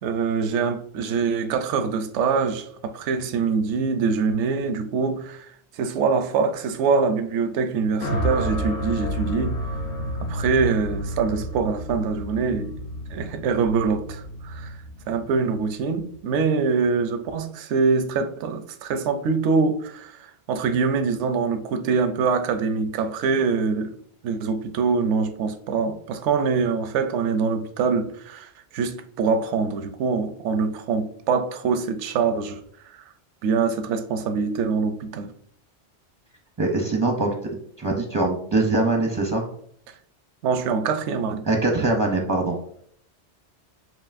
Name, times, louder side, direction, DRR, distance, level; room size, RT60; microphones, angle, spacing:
voice 1, 0.0-9.6 10.2-12.7 13.1-14.7 15.1-23.9 24.2-32.6 32.9-33.0 33.4-35.3 40.4-41.5, right 5 dB, 85° right, 0.9 m, -24 dB
sound 1, 8.0-16.3, equal, 60° left, 0.9 m, -30 dB
voice 2, 36.6-37.3 37.8-39.4 41.5-42.6, right 2 dB, 25° right, 0.4 m, -22 dB
7.4 x 2.7 x 2.5 m
omnidirectional pair, 1.2 m